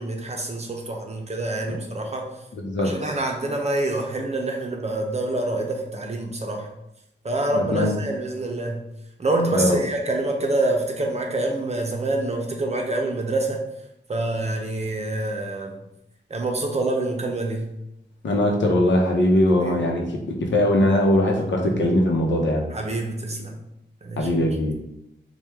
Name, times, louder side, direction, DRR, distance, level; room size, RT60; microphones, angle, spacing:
voice 1, 0.0-2.3 2.8-6.7 7.2-8.8 9.2-13.6 14.1-15.8 16.3-17.7 19.6-19.8 22.7-23.5 24.0-24.3, right 2 dB, 35° right, 2 dB, 0.7 m, -26 dB
voice 2, 2.5-3.1 7.5-7.9 9.5-9.8 18.2-22.7 24.2-24.7, left 1 dB, 75° left, 1 dB, 0.8 m, -21 dB
4.4 x 2.3 x 3.5 m, 0.84 s
wide cardioid pair, 110°, 19 cm